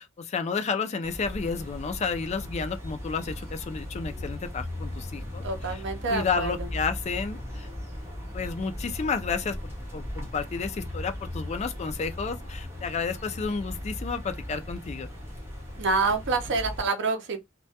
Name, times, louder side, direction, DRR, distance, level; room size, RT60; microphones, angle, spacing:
voice 1, 0.0-5.8 6.1-7.7 8.3-9.6 9.9-15.1, left 5 dB, 30° left, 0.3 m, -31 dB
sound 1, 1.0-16.9, left 1 dB, 10° right, 0.9 m, -37 dB
voice 2, 5.4-6.7 15.8-17.4, right 4 dB, 60° right, 0.6 m, -27 dB
2.2 x 2.1 x 2.7 m
head